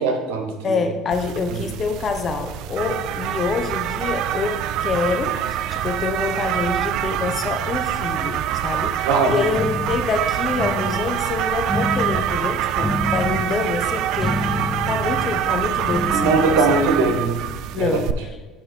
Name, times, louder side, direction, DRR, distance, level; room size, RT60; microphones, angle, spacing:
voice 1, 0.0-0.8 1.5-1.6 9.0-9.3 16.1-17.4 17.8-18.1, right 4 dB, 90° right, 4 dB, 1.1 m, -20 dB
voice 2, 0.6-14.6 14.9-16.6 17.1-17.2 17.7-18.4, left 5 dB, 40° left, 7 dB, 0.8 m, -26 dB
sound 1, 1.1-18.1, right 11 dB, 65° right, 0.3 m, -25 dB
sound 2, 7.1-8.7 9.5-10.1 10.5-11.1 11.7-12.3 12.8-13.5 14.2-15.5 15.9-17.0, left 3 dB, 15° left, 0.5 m, -29 dB
8.5 x 2.9 x 5.9 m, 1.2 s
supercardioid pair, 105°, 0 cm